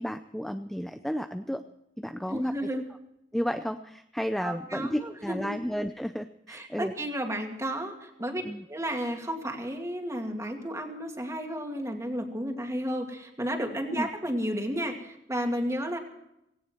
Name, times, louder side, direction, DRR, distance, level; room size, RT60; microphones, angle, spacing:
voice 1, 0.0-1.6 2.0-2.5 3.3-6.9 8.4-8.6 14.0-14.1, equal, ahead, 8 dB, 0.5 m, -32 dB
voice 2, 2.3-2.8 4.4-5.5 6.5-8.4 8.7-16.0, equal, 15° right, 3 dB, 2.4 m, -32 dB
18.0 x 17.0 x 4.5 m, 0.83 s
head